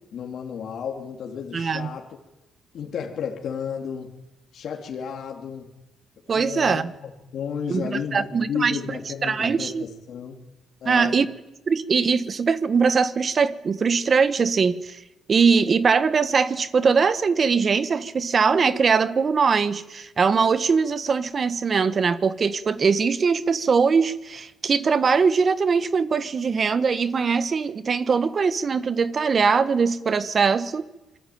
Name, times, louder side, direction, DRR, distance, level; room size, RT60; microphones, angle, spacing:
voice 1, 0.1-2.1 2.7-4.1 4.5-5.7 6.3-10.4 10.8-11.2, left 7 dB, 65° left, 2 dB, 3.1 m, -32 dB
voice 2, 1.5-1.9 6.3-6.9 7.7-8.8 9.2-9.8 10.8-11.3 11.7-15.0 15.3-30.8, right 5 dB, 40° right, 14 dB, 1.5 m, -21 dB
26.5 x 21.5 x 9.5 m, 0.97 s
cardioid pair, 90°, 0 cm